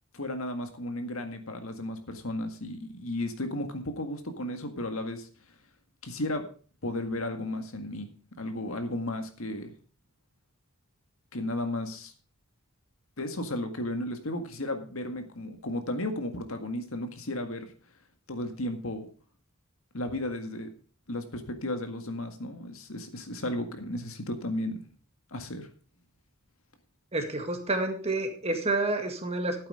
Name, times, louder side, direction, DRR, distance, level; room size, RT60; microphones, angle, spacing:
voice 1, 0.1-5.3 6.0-6.4 6.8-8.1 8.4-9.7 11.3-12.1 13.2-17.7 18.3-19.1 19.9-20.7 21.1-24.9 25.3-25.7, left 1 dB, 70° left, 6 dB, 1.9 m, -34 dB
voice 2, 27.1-29.7, right 2 dB, 30° right, 5 dB, 2.0 m, -29 dB
12.0 x 8.8 x 5.0 m, 0.41 s
head